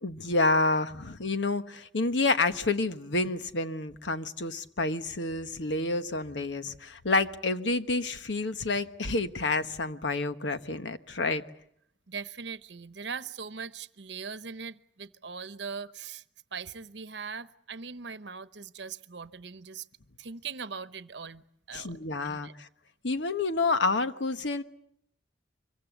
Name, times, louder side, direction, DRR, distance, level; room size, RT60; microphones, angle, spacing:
voice 1, 0.0-11.4 21.7-22.7 23.0-24.6, left 3 dB, 75° left, 1.2 m, -29 dB
voice 2, 12.1-16.2 16.5-19.9 20.2-22.5, right 5 dB, 70° right, 0.9 m, -40 dB
25.0 x 23.0 x 8.1 m
head